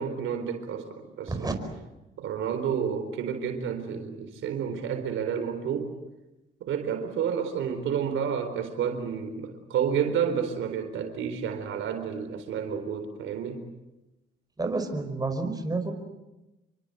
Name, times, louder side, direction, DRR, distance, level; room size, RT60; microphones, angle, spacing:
voice 1, 0.0-1.6 2.2-5.9 6.6-13.6, right 7 dB, 80° right, 7 dB, 4.1 m, -30 dB
voice 2, 14.6-15.9, right 3 dB, 20° right, 6 dB, 5.1 m, -29 dB
27.5 x 24.0 x 8.1 m, 1.0 s
cardioid pair, 90°, 20 cm